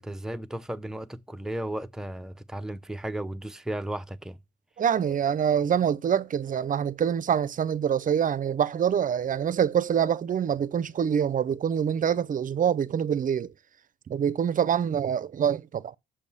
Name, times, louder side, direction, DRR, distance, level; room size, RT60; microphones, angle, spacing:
voice 1, 0.0-4.4, right 1 dB, 5° right, 0.6 m, -34 dB
voice 2, 4.8-13.5 14.1-16.0, right 8 dB, 40° right, 0.6 m, -25 dB
7.0 x 5.3 x 7.0 m
cardioid pair, 90°, 20 cm